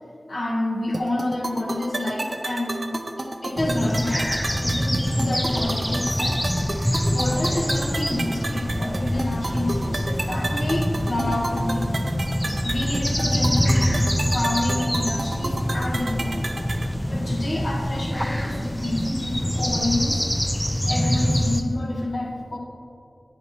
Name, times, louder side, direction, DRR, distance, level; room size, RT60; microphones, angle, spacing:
voice 1, 0.3-4.3 4.6-6.6 7.1-11.9 12.6-16.5 17.1-20.3 20.9-22.6, left 1 dB, 85° left, -3 dB, 1.6 m, -28 dB
sound 1, 0.9-16.9, right 2 dB, 55° right, 0.5 m, -32 dB
sound 2, 3.6-21.6, equal, 5° left, 0.5 m, -25 dB
sound 3, 4.4-17.6, left 1 dB, 70° left, 1.2 m, -46 dB
10.0 x 9.4 x 3.0 m, 2.7 s
wide cardioid pair, 60°, 0 cm